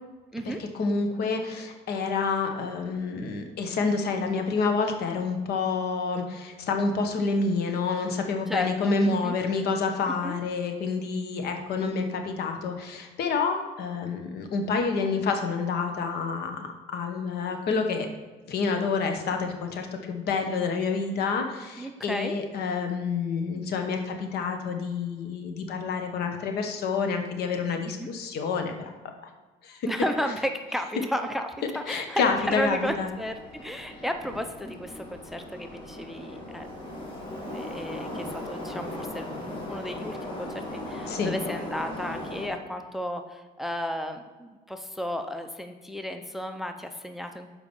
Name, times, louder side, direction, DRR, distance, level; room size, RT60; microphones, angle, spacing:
voice 1, 0.4-18.1 18.5-29.3 29.6-29.9 31.9-33.1 41.0-41.3, left 4 dB, 70° left, 5 dB, 1.1 m, -28 dB
voice 2, 8.5-9.3 10.2-10.4 21.8-22.4 28.0-28.1 29.9-33.4 33.6-36.7 37.4-47.5, equal, ahead, 6 dB, 0.5 m, -33 dB
Subway metro underground, 32.1-42.5, left 1 dB, 30° left, 2.0 m, -38 dB
7.0 x 4.8 x 5.4 m, 1.3 s
cardioid pair, 110°, 17 cm